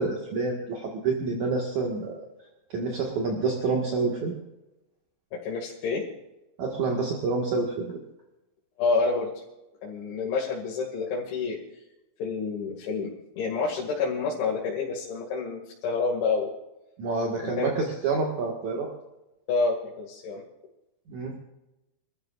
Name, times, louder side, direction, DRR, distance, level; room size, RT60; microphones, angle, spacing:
voice 1, 0.0-2.2 2.7-4.3 6.6-8.0 17.0-18.9 21.1-21.4, right 4 dB, 55° right, -1 dB, 2.2 m, -28 dB
voice 2, 5.3-6.0 8.8-9.3 9.8-11.6 12.2-13.1 13.4-16.5 17.4-17.7 19.5-20.4, left 4 dB, 65° left, -4 dB, 4.5 m, -28 dB
28.5 x 14.0 x 2.5 m, 0.95 s
omnidirectional pair, 5.9 m